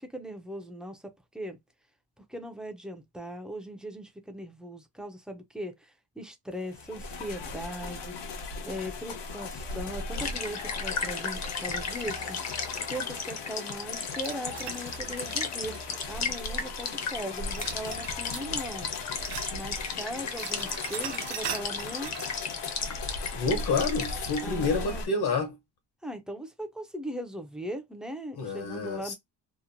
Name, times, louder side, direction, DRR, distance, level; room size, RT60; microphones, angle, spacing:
voice 1, 0.0-1.6 2.3-8.2 8.7-18.9 19.5-22.1 24.4-25.0 26.0-29.1, equal, ahead, 0.3 m, -39 dB
sound 1, 6.6-25.1, left 3 dB, 90° left, 0.9 m, -38 dB
sound 2, 10.1-24.4, left 5 dB, 40° left, 0.6 m, -36 dB
sound 3, 14.2-16.3 17.5-18.6 18.8-20.0 20.2-22.5, right 9 dB, 80° right, 0.7 m, -40 dB
voice 2, 23.4-25.6 28.4-29.1, left 3 dB, 65° left, 1.0 m, -29 dB
2.9 x 2.0 x 2.5 m
wide cardioid pair, 175°, 40 cm